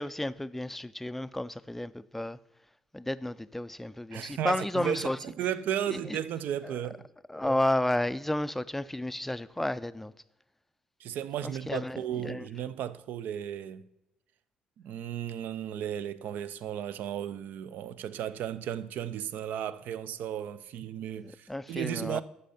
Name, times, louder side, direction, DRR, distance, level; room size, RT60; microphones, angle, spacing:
voice 1, 0.0-2.4 2.9-5.2 5.9-6.0 7.3-10.1 11.4-12.0 12.2-12.4 21.2-22.2, left 1 dB, 5° left, 0.3 m, -32 dB
voice 2, 4.1-7.1 11.0-13.8 14.8-22.2, right 10 dB, 70° right, 0.4 m, -34 dB
8.2 x 5.6 x 4.1 m
supercardioid pair, 65°, 3 cm